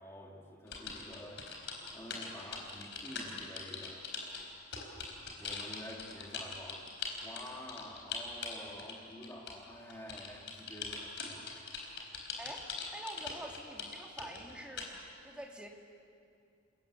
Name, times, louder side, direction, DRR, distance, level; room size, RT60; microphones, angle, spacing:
voice 1, 0.0-1.5 1.9-4.1 5.4-6.9 7.2-11.4, left 1 dB, 10° left, -1 dB, 2.7 m, -48 dB
sound 1, 0.7-9.6 9.9-14.9, left 5 dB, 55° left, 4.5 m, -41 dB
voice 2, 12.4-14.9 15.2-15.7, right 1 dB, 5° right, 0 dB, 2.3 m, -46 dB
29.5 x 20.5 x 8.3 m, 2.4 s
head